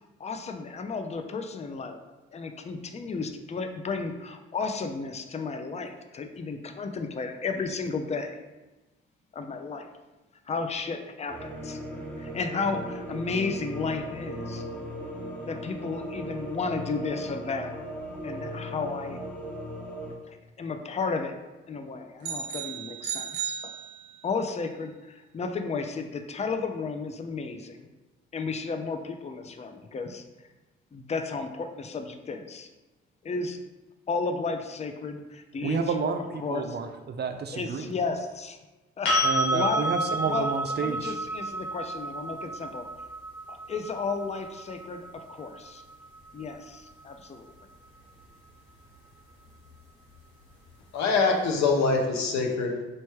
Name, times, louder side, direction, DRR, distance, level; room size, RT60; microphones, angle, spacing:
voice 1, 0.2-2.0 2.3-8.4 9.3-9.9 10.5-11.8 12.2-14.6 15.5-17.8 18.2-19.2 20.2-21.4 21.7-23.7 24.2-27.9 28.3-30.2 30.9-32.7 33.2-33.6 34.1-36.1 36.4-36.8 37.5-38.6 39.0-39.1 39.5-39.9 40.3-42.9 43.5-45.8 46.3-47.5, left 4 dB, 20° left, 7 dB, 0.5 m, -33 dB
sound 1, 11.3-20.1, equal, 5° left, 1.0 m, -37 dB
sound 2, 22.2-24.4, right 8 dB, 70° right, 0.7 m, -35 dB
voice 2, 35.6-37.9 39.2-41.2, right 5 dB, 35° right, 7 dB, 0.4 m, -30 dB
sound 3, 39.0-46.9 49.7-49.8, right 1 dB, 85° left, 1.1 m, -31 dB
voice 3, 50.9-52.8, left 4 dB, 65° left, 2 dB, 0.8 m, -24 dB
4.2 x 3.2 x 3.1 m, 1.1 s
hypercardioid pair, 45°, 30 cm